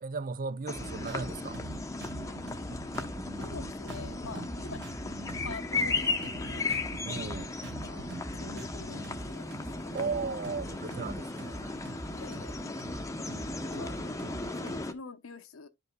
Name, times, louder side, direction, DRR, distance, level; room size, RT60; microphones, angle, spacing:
voice 1, 0.0-1.6 7.0-7.5 9.9-11.7, right 4 dB, 40° right, 0.5 m, -36 dB
sound 1, 0.7-14.9, left 3 dB, 15° left, 0.8 m, -36 dB
sound 2, 0.7-14.8, right 1 dB, 55° right, 1.7 m, -43 dB
sound 3, 0.9-8.8, left 3 dB, 45° left, 0.8 m, -51 dB
voice 2, 3.4-4.8 5.4-6.8 7.8-8.0 8.3-9.5 9.8-10.1 12.1-12.5 13.7-15.7, left 4 dB, 75° left, 0.9 m, -45 dB
10.5 x 5.4 x 2.2 m
head